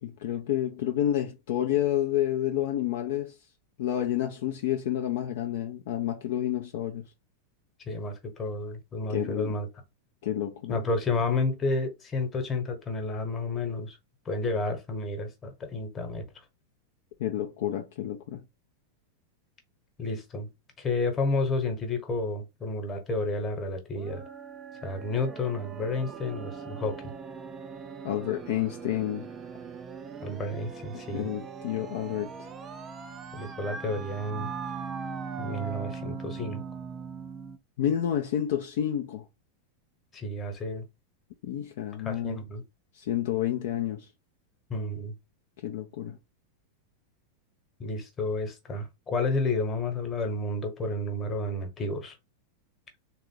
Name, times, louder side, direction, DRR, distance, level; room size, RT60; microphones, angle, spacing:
voice 1, 0.0-3.3 3.8-7.0 9.1-9.5 10.2-10.8 17.2-18.4 28.0-29.3 31.1-32.5 37.8-39.2 41.4-42.4 43.0-44.1 45.6-46.2, left 11 dB, 55° left, 0.5 m, -29 dB
voice 2, 7.9-9.7 10.7-14.0 14.2-16.2 20.0-20.5 20.8-24.2 24.8-27.0 30.2-31.3 33.3-34.5 35.4-36.6 40.1-40.9 42.0-42.6 44.7-45.1 47.8-52.1, left 2 dB, 20° left, 1.2 m, -31 dB
sound 1, 23.9-37.6, right 5 dB, 25° right, 0.5 m, -40 dB
3.5 x 2.4 x 3.7 m
figure-of-eight pair, 90°, 0 cm